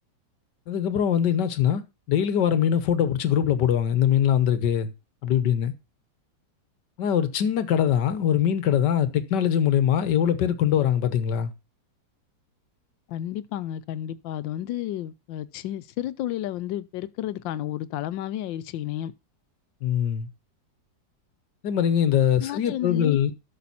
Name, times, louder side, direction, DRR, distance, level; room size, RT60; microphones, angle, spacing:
voice 1, 0.7-1.8 2.1-4.9 5.2-5.7 7.0-11.5 19.8-20.3 21.6-23.3, left 9 dB, 70° left, 1.5 m, -22 dB
voice 2, 13.1-19.1 22.4-23.2, left 12 dB, 85° left, 1.4 m, -32 dB
13.0 x 6.2 x 4.1 m
omnidirectional pair, 2.0 m